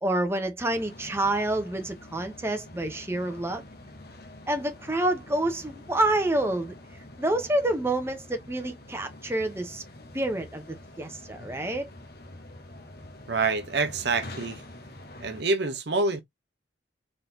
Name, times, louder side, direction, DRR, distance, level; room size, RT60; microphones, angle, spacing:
voice 1, 0.0-3.6 4.5-6.7 7.2-9.8 10.1-10.6 11.0-11.9, right 1 dB, 15° right, 0.8 m, -28 dB
sound 1, 0.7-15.4, left 1 dB, 50° left, 1.1 m, -46 dB
voice 2, 13.3-14.6 15.2-16.2, right 3 dB, 55° right, 0.8 m, -26 dB
4.0 x 3.8 x 2.7 m
head